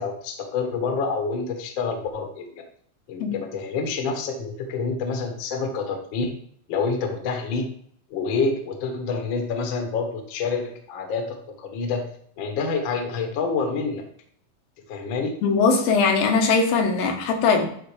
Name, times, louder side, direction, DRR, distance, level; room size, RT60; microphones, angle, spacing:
voice 1, 0.0-2.5 3.1-6.3 6.7-7.7 8.1-12.1 12.4-14.0 14.9-15.4, left 4 dB, 65° left, 4 dB, 1.2 m, -27 dB
voice 2, 15.4-17.7, left 4 dB, 90° left, 3 dB, 3.0 m, -20 dB
10.5 x 3.8 x 4.9 m, 0.64 s
omnidirectional pair, 3.9 m